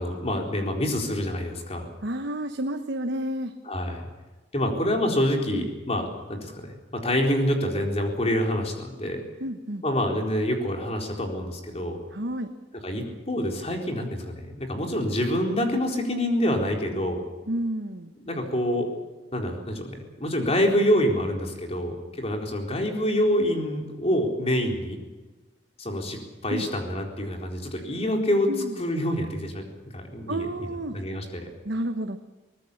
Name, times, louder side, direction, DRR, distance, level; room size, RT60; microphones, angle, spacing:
voice 1, 0.0-1.9 3.6-4.1 4.5-9.3 9.8-12.0 12.8-17.2 18.2-18.9 19.3-25.0 25.8-28.5 28.8-29.6 29.9-31.5, equal, 35° left, 2 dB, 4.2 m, -26 dB
voice 2, 2.0-3.5 5.5-5.7 9.4-9.8 12.1-12.5 17.5-18.1 26.5-26.6 28.5-28.8 30.3-31.0 31.6-32.2, right 1 dB, 65° right, 6 dB, 1.2 m, -30 dB
23.5 x 19.5 x 7.2 m, 1.2 s
head